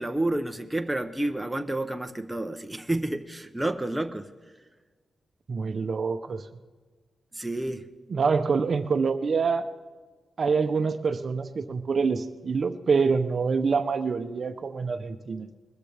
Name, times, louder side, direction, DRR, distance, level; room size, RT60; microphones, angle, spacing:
voice 1, 0.0-4.3 7.3-7.8, right 1 dB, 10° right, 6 dB, 0.7 m, -30 dB
voice 2, 5.5-6.4 8.1-9.7 10.4-15.5, right 5 dB, 45° right, 9 dB, 0.7 m, -26 dB
21.5 x 13.5 x 3.4 m, 1.4 s
wide cardioid pair, 125°, 0 cm